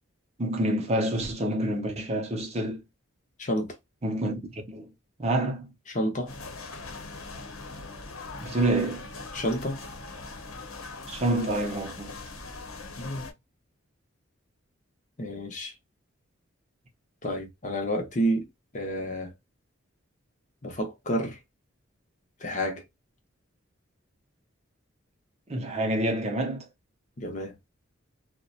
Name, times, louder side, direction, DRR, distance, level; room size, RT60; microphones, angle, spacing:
voice 1, 0.4-2.8 4.0-4.9 5.2-5.7 8.4-9.1 11.1-12.2 25.5-26.7, right 1 dB, 30° right, 0.6 m, -28 dB
voice 2, 3.4-3.8 5.9-6.3 9.3-9.8 13.0-13.3 15.2-15.7 17.2-18.5 18.7-19.3 20.6-21.4 22.4-22.8 27.2-27.6, equal, 35° left, 0.7 m, -30 dB
sound 1, 6.3-13.3, left 3 dB, 85° left, 0.8 m, -41 dB
2.7 x 2.1 x 2.3 m
head